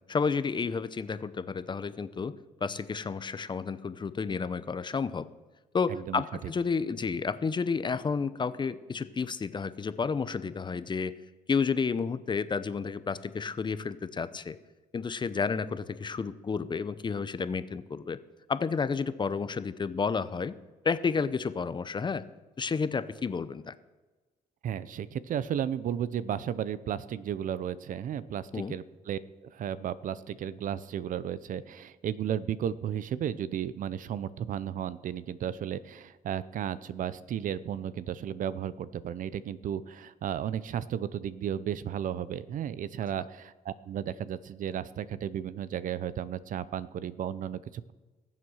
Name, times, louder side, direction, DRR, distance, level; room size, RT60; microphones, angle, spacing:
voice 1, 0.1-2.3 2.6-5.3 5.7-11.1 11.5-14.6 14.9-18.2 18.5-20.5 20.8-22.2 22.6-23.7 28.5-28.7, left 5 dB, 30° left, 14 dB, 0.7 m, -31 dB
voice 2, 5.9-6.5 24.6-29.2 29.5-47.9, right 9 dB, 60° right, 17 dB, 0.7 m, -34 dB
20.0 x 7.6 x 6.4 m, 1.2 s
cardioid pair, 90°, 15 cm